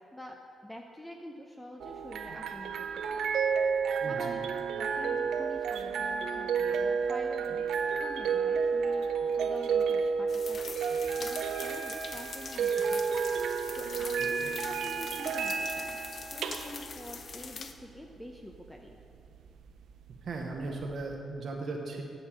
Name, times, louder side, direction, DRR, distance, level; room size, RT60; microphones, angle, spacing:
voice 1, 0.6-3.3 4.1-4.4 4.8-7.7 8.0-10.8 11.2-13.0 13.7-16.0 16.3-19.0, equal, 10° left, 2 dB, 0.6 m, -46 dB
sound 1, 1.8-20.9, right 6 dB, 85° right, 0.5 m, -31 dB
voice 2, 4.0-4.4 14.4-14.5 20.2-22.0, right 3 dB, 60° right, 0 dB, 0.9 m, -37 dB
sound 2, 10.3-17.7, left 5 dB, 55° left, 0.6 m, -43 dB
sound 3, 10.6-15.0, left 2 dB, 85° left, 1.2 m, -56 dB
8.7 x 5.4 x 7.3 m, 2.5 s
cardioid pair, 85°, 0 cm